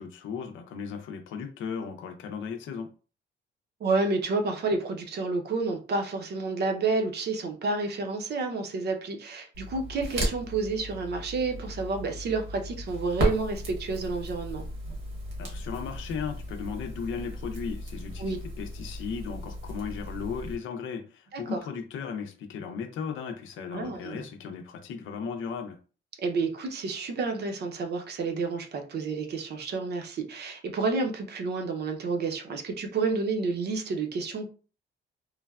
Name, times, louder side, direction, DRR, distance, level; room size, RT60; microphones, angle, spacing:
voice 1, 0.0-2.9 15.4-25.8, left 6 dB, 80° left, 0.6 m, -36 dB
voice 2, 3.8-14.6 18.2-18.4 21.3-21.6 23.7-24.3 26.2-34.5, right 3 dB, 55° right, 0.7 m, -30 dB
Crackle, 9.5-20.6, equal, 80° right, 1.3 m, -35 dB
3.2 x 2.2 x 2.3 m
cardioid pair, 90°, 20 cm